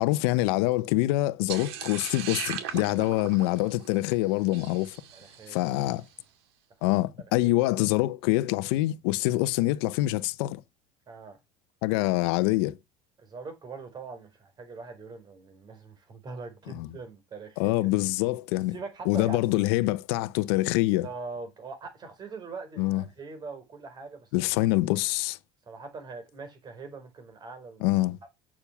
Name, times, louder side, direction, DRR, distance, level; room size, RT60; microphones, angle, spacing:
voice 1, 0.0-5.0 5.5-6.0 6.8-10.6 11.8-12.8 16.7-16.9 17.6-18.7 19.1-21.1 22.8-23.0 24.3-25.4 27.8-28.2, left 18 dB, 80° left, 0.8 m, -25 dB
sound 1, 1.5-5.8, right 9 dB, 90° right, 2.3 m, -38 dB
voice 2, 5.1-5.7 7.4-7.5 11.1-11.4 13.2-17.9 18.7-19.4 21.0-24.3 25.7-27.9, right 4 dB, 35° right, 4.3 m, -42 dB
8.7 x 7.0 x 5.9 m
supercardioid pair, 115°, 13 cm